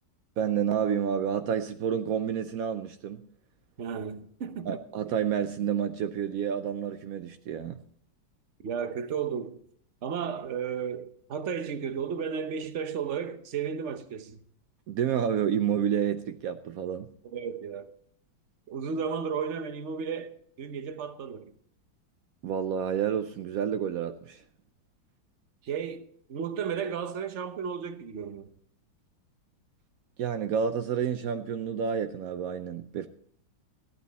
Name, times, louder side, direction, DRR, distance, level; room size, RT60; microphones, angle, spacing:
voice 1, 0.4-3.3 4.7-7.8 14.9-17.1 22.4-24.4 30.2-33.1, right 8 dB, 80° right, 0.8 m, -29 dB
voice 2, 3.8-4.8 8.6-9.6 10.0-14.4 17.3-17.9 18.7-21.5 25.6-28.5, right 7 dB, 50° right, 0.9 m, -34 dB
15.0 x 11.5 x 4.2 m
omnidirectional pair, 2.3 m